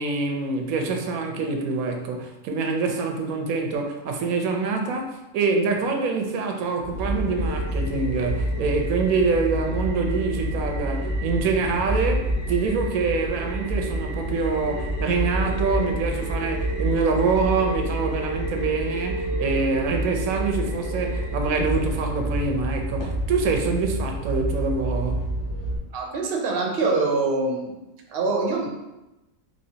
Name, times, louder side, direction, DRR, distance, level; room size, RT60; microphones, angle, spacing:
voice 1, 0.0-25.3, right 4 dB, 85° right, 3 dB, 1.0 m, -25 dB
sound 1, 6.8-25.8, right 1 dB, 25° left, 0.7 m, -28 dB
voice 2, 25.9-27.8 28.1-28.7, right 3 dB, 55° right, 0 dB, 0.8 m, -24 dB
4.2 x 3.0 x 2.7 m, 0.98 s
omnidirectional pair, 1.4 m